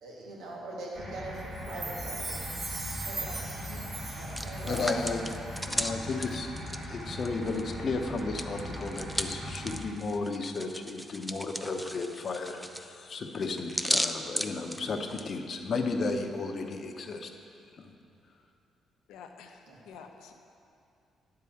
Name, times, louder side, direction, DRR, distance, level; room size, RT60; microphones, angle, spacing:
voice 1, 0.0-2.5 3.0-3.9 4.2-4.9 19.7-19.8, right 2 dB, 85° right, -4 dB, 2.0 m, -41 dB
sound 1, 0.9-9.8, equal, 65° right, 2.6 m, -40 dB
Chime, 1.6-5.2 5.5-5.6, right 3 dB, 40° right, 1.2 m, -40 dB
Hands, 4.0-7.7 8.0-15.3, equal, ahead, 0.4 m, -35 dB
voice 2, 4.7-5.3 5.7-17.3 17.7-17.9, left 3 dB, 50° left, 4 dB, 0.9 m, -34 dB
voice 3, 5.7-6.0 19.1-20.3, left 7 dB, 90° left, 4 dB, 0.8 m, -48 dB
9.8 x 4.8 x 7.1 m, 2.5 s
cardioid pair, 90°, 0 cm